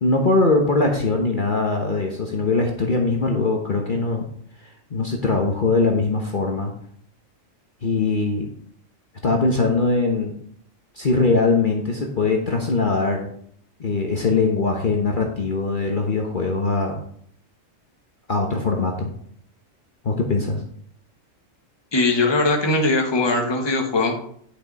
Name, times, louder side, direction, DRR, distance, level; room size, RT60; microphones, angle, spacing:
voice 1, 0.0-4.3 4.9-6.7 7.8-8.5 9.2-10.3 11.0-13.3 13.8-17.0 18.3-19.1 20.0-20.6, left 3 dB, 40° left, 1 dB, 1.1 m, -21 dB
voice 2, 21.9-24.2, left 2 dB, 20° left, 1 dB, 1.2 m, -20 dB
10.0 x 5.9 x 4.1 m, 0.64 s
omnidirectional pair, 1.4 m